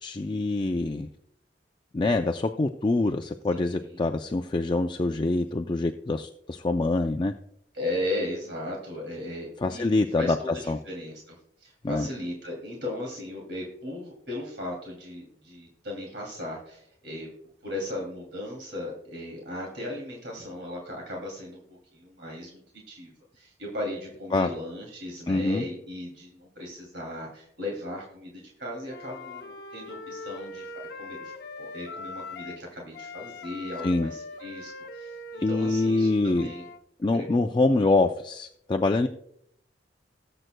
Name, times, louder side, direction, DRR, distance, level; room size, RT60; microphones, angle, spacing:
voice 1, 0.0-1.1 1.9-7.3 9.6-10.4 10.7-10.8 11.8-12.1 24.3-24.5 25.3-25.6 33.8-34.1 35.4-36.5 37.0-39.1, left 2 dB, 25° left, 5 dB, 0.4 m, -25 dB
voice 2, 3.6-4.0 7.7-17.3 17.6-22.6 22.9-30.7 31.0-36.7 37.1-37.5, left 1 dB, 70° right, -1 dB, 2.7 m, -37 dB
Wind instrument woodwind instrument, 28.9-32.6 32.9-36.8, left 3 dB, 60° left, 0.7 m, -41 dB
19.5 x 7.8 x 2.2 m, 0.71 s
head